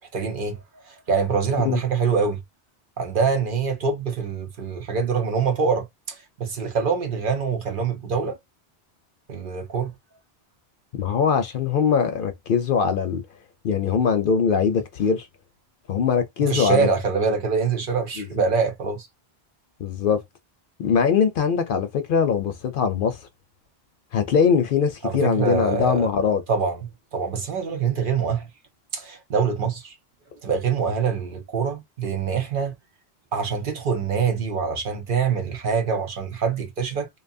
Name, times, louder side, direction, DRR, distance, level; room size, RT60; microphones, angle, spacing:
voice 1, 0.1-0.6 0.8-2.4 3.0-8.4 9.3-9.9 16.5-19.1 25.0-26.1 26.5-28.5 28.9-29.9 30.4-32.7 33.3-37.1, right 5 dB, 55° right, 0.8 m, -24 dB
voice 2, 11.0-13.2 13.6-15.3 15.9-16.9 18.2-18.4 19.8-20.2 20.8-23.3 24.1-26.4, left 6 dB, 60° left, 0.6 m, -22 dB
2.6 x 2.3 x 2.5 m
omnidirectional pair, 1.1 m